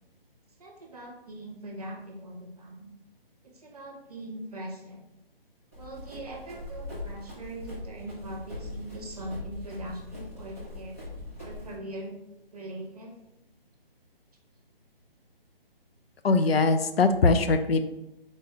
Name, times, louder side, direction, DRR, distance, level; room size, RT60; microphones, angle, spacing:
voice 1, 0.6-2.9 3.4-5.1 5.7-11.0 11.4-12.1 12.5-13.2, right 1 dB, 40° right, 1 dB, 0.9 m, -41 dB
Run, 5.7-11.7, left 2 dB, 15° left, 0.6 m, -41 dB
voice 2, 16.2-17.8, left 3 dB, 85° left, 9 dB, 0.6 m, -21 dB
4.1 x 3.4 x 3.5 m, 0.90 s
hypercardioid pair, 175°, 29 cm